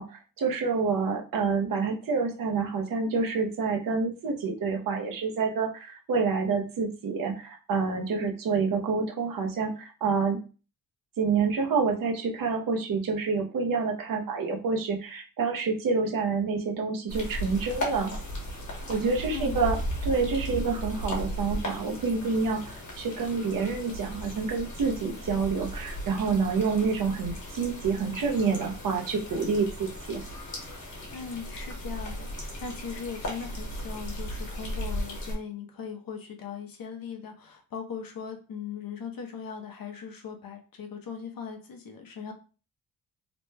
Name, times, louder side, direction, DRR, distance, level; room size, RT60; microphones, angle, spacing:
voice 1, 0.0-10.4 11.2-18.1 18.9-19.8 20.0-22.6 23.0-30.2, right 4 dB, 70° right, 2 dB, 0.8 m, -28 dB
sound 1, 17.1-35.3, equal, 55° left, 1.3 m, -36 dB
voice 2, 19.3-19.6 31.1-42.3, left 6 dB, 70° left, 3 dB, 0.8 m, -39 dB
3.0 x 2.2 x 3.2 m, 0.35 s
wide cardioid pair, 125°, 36 cm